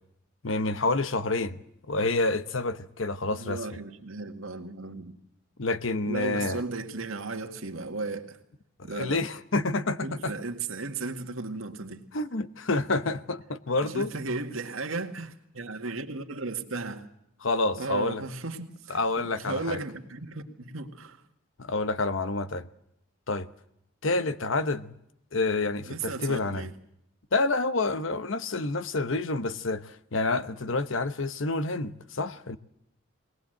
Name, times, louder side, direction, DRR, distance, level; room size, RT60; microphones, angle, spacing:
voice 1, 0.4-1.6 1.9-3.6 5.6-6.6 8.9-10.3 12.1-14.1 17.4-18.2 18.9-19.8 21.6-22.7 23.3-23.5 24.0-24.9 25.3-26.7 27.3-32.6, left 3 dB, 70° left, 1.0 m, -28 dB
voice 2, 3.3-5.2 6.1-8.4 8.8-9.2 10.0-12.0 13.7-17.1 17.8-21.2 25.9-26.7, right 3 dB, 80° right, 2.0 m, -35 dB
21.0 x 19.0 x 7.9 m
head